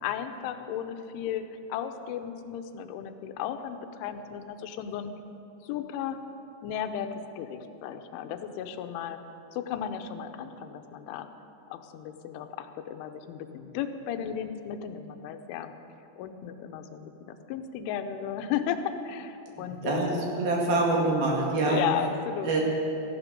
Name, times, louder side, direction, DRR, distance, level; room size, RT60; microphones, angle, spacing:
voice 1, 0.0-5.1 5.6-6.2 6.6-9.2 9.5-11.3 11.7-15.7 16.2-20.0 21.7-22.6, left 9 dB, 90° left, 8 dB, 3.3 m, -34 dB
voice 2, 19.5-20.1 20.4-21.8 22.4-22.6, right 2 dB, 60° right, -2 dB, 3.6 m, -26 dB
18.0 x 14.5 x 5.2 m, 3.0 s
omnidirectional pair, 5.4 m